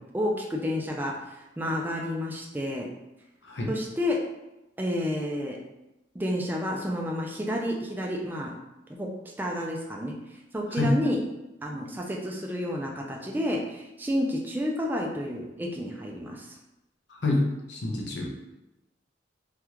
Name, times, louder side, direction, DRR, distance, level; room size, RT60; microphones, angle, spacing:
voice 1, 0.1-1.1 1.6-2.9 3.7-4.2 4.8-5.6 6.1-8.5 9.0-9.1 9.4-10.1 10.5-11.2 11.6-16.5, equal, 10° right, -1 dB, 0.4 m, -30 dB
voice 2, 17.1-18.3, left 2 dB, 65° left, -1 dB, 0.7 m, -27 dB
3.4 x 2.3 x 2.9 m, 0.95 s
head